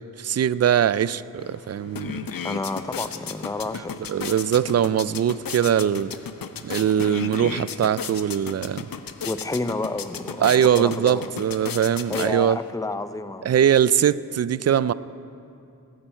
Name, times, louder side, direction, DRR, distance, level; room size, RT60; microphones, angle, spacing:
voice 1, 0.2-2.2 4.1-6.1 6.6-8.9 10.4-12.6 13.4-14.9, right 9 dB, 45° right, 0.4 m, -21 dB
sound 1, 1.4-1.5 1.8-12.7, left 7 dB, 65° left, 0.8 m, -35 dB
voice 2, 2.4-4.2 6.7-6.9 9.2-11.3 12.1-13.6, left 2 dB, 10° left, 0.6 m, -30 dB
21.0 x 9.1 x 4.4 m
cardioid pair, 50°, 37 cm